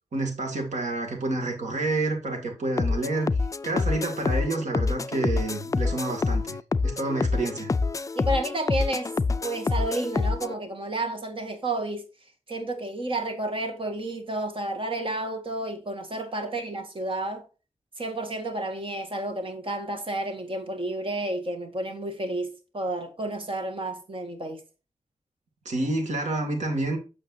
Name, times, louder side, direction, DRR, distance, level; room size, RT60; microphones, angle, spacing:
voice 1, 0.1-3.3 3.6-6.6 6.8-7.7 25.6-27.0, right 2 dB, 90° right, 2.4 m, -28 dB
sound 1, 2.8-10.5, left 4 dB, 30° left, 0.4 m, -27 dB
voice 2, 8.2-9.1 9.4-12.1 12.5-17.5 18.0-24.6, right 1 dB, 50° right, 1.8 m, -31 dB
8.5 x 6.4 x 2.7 m
wide cardioid pair, 95°, 12 cm